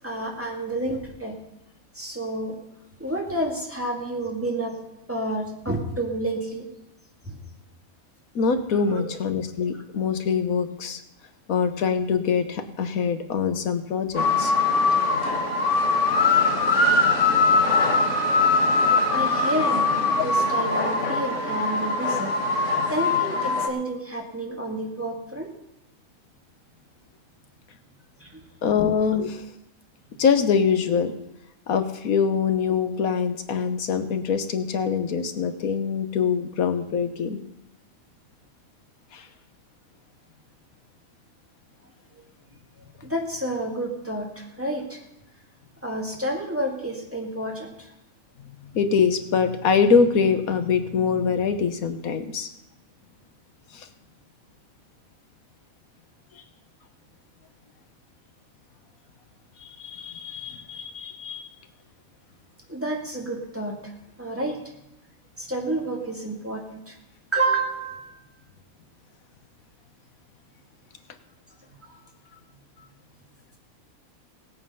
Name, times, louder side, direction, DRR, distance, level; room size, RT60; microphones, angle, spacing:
voice 1, 0.0-1.4 1.9-2.6 3.0-4.8 5.1-6.7 7.2-7.4 8.9-9.1 19.1-22.3 22.9-25.5 28.2-28.4 43.0-45.0 45.8-47.9 62.7-63.9 64.2-64.7 65.4-67.0 67.3-68.2 71.8-71.9, right 1 dB, 10° right, -1 dB, 2.1 m, -30 dB
voice 2, 8.3-11.0 11.5-14.5 28.6-29.4 30.2-31.1 31.7-37.4 39.1-39.3 48.4-52.5 53.7-53.9 59.6-61.5, left 6 dB, 85° left, 8 dB, 1.4 m, -24 dB
sound 1, 14.1-23.7, left 3 dB, 60° left, 1.8 m, -22 dB
18.0 x 8.5 x 5.5 m, 0.88 s
omnidirectional pair, 1.5 m